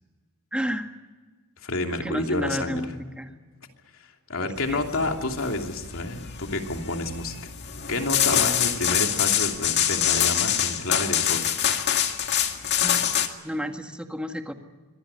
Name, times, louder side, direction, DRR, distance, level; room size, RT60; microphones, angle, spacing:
voice 1, 0.5-0.9 1.9-2.9 3.2-3.3 4.4-4.9 12.8-13.1 13.4-14.5, equal, 5° right, 5 dB, 1.8 m, -31 dB
voice 2, 1.6-2.8 4.0-7.3 7.9-11.5, left 2 dB, 65° left, 3 dB, 2.9 m, -29 dB
sound 1, 4.6-13.3, left 10 dB, 50° left, 2.1 m, -25 dB
25.0 x 18.5 x 9.7 m, 1.4 s
head